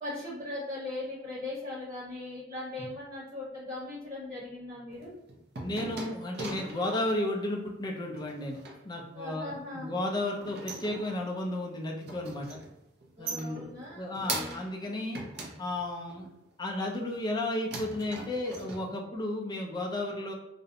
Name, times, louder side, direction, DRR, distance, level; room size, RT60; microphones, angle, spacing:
voice 1, 0.0-5.1 9.1-9.9 13.2-14.6, left 2 dB, 30° right, -10 dB, 1.0 m, -39 dB
sound 1, 4.9-7.2 8.2-8.8 10.2-11.5 11.8-12.7 13.0-14.8 15.1-16.3 16.8-17.4 17.7-18.8, right 3 dB, 50° right, 0.5 m, -40 dB
voice 2, 5.6-8.6 8.8-12.6 13.2-13.7 14.0-15.2 15.6-16.3 16.6-20.3, left 1 dB, 20° left, 0 dB, 0.4 m, -33 dB
2.4 x 2.1 x 2.7 m, 0.90 s
head